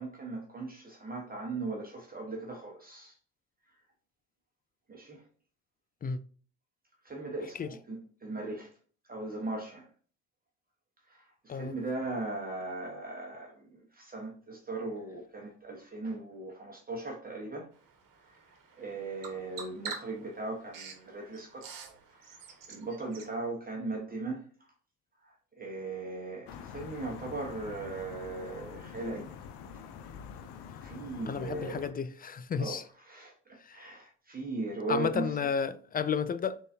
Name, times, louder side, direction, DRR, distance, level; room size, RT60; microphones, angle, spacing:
voice 1, 0.0-3.1 4.9-5.2 7.0-8.7 9.1-9.9 11.1-17.7 18.3-18.4 18.8-21.7 22.1-22.3 22.7-24.4 25.2-29.3 30.8-31.9 32.6-32.8 33.0-33.3 33.7-35.4, right 2 dB, 20° right, 1.2 m, -38 dB
Bird vocalization bird call bird song, 17.7-23.3, right 5 dB, 55° right, 1.4 m, -47 dB
sound 1, 26.5-31.9, left 7 dB, 80° left, 0.6 m, -46 dB
voice 2, 31.3-32.8 33.7-33.9 34.9-36.6, left 6 dB, 25° left, 0.3 m, -32 dB
3.9 x 3.8 x 2.7 m
supercardioid pair, 70°, 39 cm